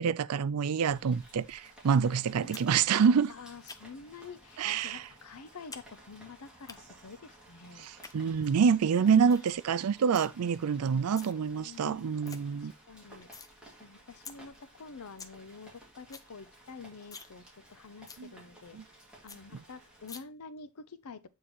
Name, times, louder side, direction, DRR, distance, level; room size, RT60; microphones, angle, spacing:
voice 1, 0.0-3.3 4.6-5.0 7.8-12.7 18.2-18.3 18.7-18.8, right 6 dB, 90° right, 0.4 m, -27 dB
Rain, 0.9-20.1, right 1 dB, 5° right, 2.3 m, -56 dB
sound 1, 2.5-2.7 3.0-4.1 4.7-4.8 5.2-5.9 6.1-6.8 7.8-8.1 8.6-8.7 9.0-9.1 9.3-9.5 9.8-10.3 10.9-11.3 11.8-11.9 12.0-12.4 12.8-13.5 13.9-14.0 14.3-14.4 14.8-14.9 15.0-15.4 15.7-15.8 16.0-16.3 16.6-16.7 17.0-17.3 17.6-17.7 18.1-18.2 18.6-18.7 19.0-19.1 19.3-19.4 20.1-20.2, left 5 dB, 15° left, 0.6 m, -47 dB
voice 2, 3.3-7.9 11.6-13.3 13.8-18.8 19.2-21.3, left 4 dB, 85° left, 0.7 m, -48 dB
8.4 x 3.7 x 4.4 m
head